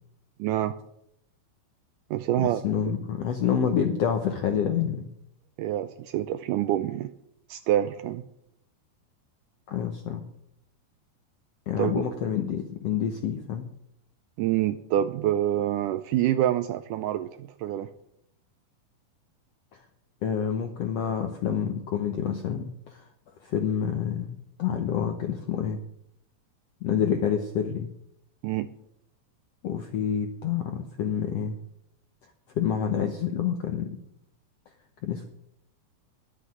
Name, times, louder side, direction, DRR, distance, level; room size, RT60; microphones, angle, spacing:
voice 1, 0.4-0.8 2.1-2.6 5.6-7.1 7.5-8.2 11.8-12.0 14.4-17.9 28.4-28.7, right 12 dB, 80° right, 12 dB, 1.9 m, -26 dB
voice 2, 2.6-5.1 9.7-10.2 11.7-13.7 20.2-23.0 23.4-25.8 26.8-27.9 29.6-31.6 32.6-34.0 35.0-35.2, left 8 dB, 75° left, 5 dB, 1.5 m, -28 dB
11.5 x 7.9 x 9.3 m, 0.74 s
omnidirectional pair, 4.2 m